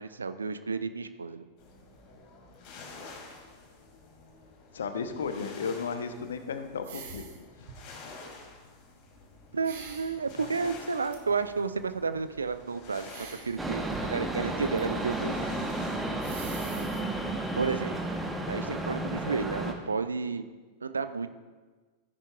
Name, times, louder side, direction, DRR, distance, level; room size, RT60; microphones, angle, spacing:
voice 1, 0.0-1.5 9.5-15.4 17.6-18.0 18.5-20.4 20.8-21.3, right 4 dB, 75° right, 12 dB, 0.4 m, -31 dB
sound 1, 1.6-16.6, left 3 dB, 40° left, 2.3 m, -49 dB
voice 2, 4.7-7.3 7.6-7.7, left 5 dB, 65° left, 8 dB, 0.8 m, -34 dB
sound 2, 6.8-7.4 7.7-8.0 9.6-10.2 11.1-11.2 13.0-13.6 13.9-14.8 15.1-15.2 15.7-15.8 16.2-17.0, right 6 dB, 55° right, 1.2 m, -45 dB
sound 3, 13.6-19.7, right 1 dB, 10° right, 1.0 m, -32 dB
13.5 x 9.9 x 2.4 m, 1.4 s
figure-of-eight pair, 90°, 0 cm